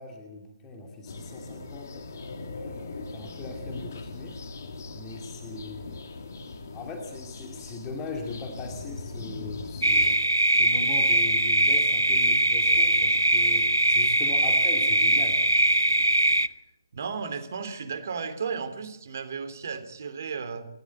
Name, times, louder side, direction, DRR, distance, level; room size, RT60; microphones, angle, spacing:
voice 1, 0.0-2.1 2.5-4.4 4.9-6.0 6.7-10.2 10.5-15.5, left 3 dB, 15° left, 2 dB, 2.6 m, -40 dB
sound 1, 1.1-10.2, left 3 dB, 45° left, 2.2 m, -40 dB
sound 2, 9.8-16.5, right 1 dB, 85° right, 0.9 m, -21 dB
voice 2, 16.9-20.7, right 5 dB, 45° right, 9 dB, 3.2 m, -34 dB
28.5 x 13.0 x 8.1 m, 0.91 s
figure-of-eight pair, 140°, 2 cm